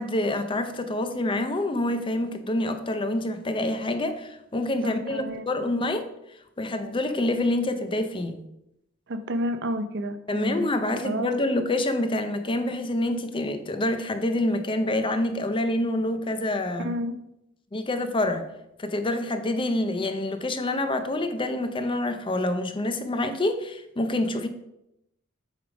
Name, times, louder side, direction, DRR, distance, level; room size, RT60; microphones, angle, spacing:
voice 1, 0.0-6.0 6.6-8.4 10.3-16.9 17.7-18.4 18.8-24.5, left 1 dB, 25° left, 8 dB, 0.6 m, -27 dB
voice 2, 4.8-5.7 9.1-10.7 11.0-11.3 16.8-17.2, equal, 60° right, 9 dB, 0.6 m, -30 dB
8.1 x 3.5 x 5.0 m, 0.84 s
head